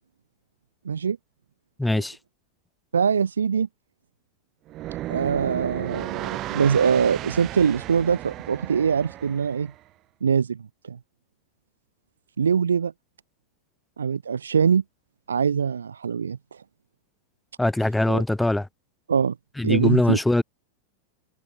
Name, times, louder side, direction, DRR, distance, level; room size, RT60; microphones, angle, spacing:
voice 1, 0.8-1.2 1.9-2.0 2.9-3.7 5.1-9.7 10.2-11.0 12.4-12.9 14.0-14.8 15.3-16.6 18.1-18.2 19.1-19.4 19.6-20.2, right 6 dB, 70° right, 2.1 m, -23 dB
voice 2, 1.8-2.2 17.6-18.7 19.6-20.4, left 1 dB, 5° left, 6.4 m, -22 dB
sound 1, 4.7-9.8, right 15 dB, 35° right, 3.6 m, -34 dB
figure-of-eight pair, 90°, 0 cm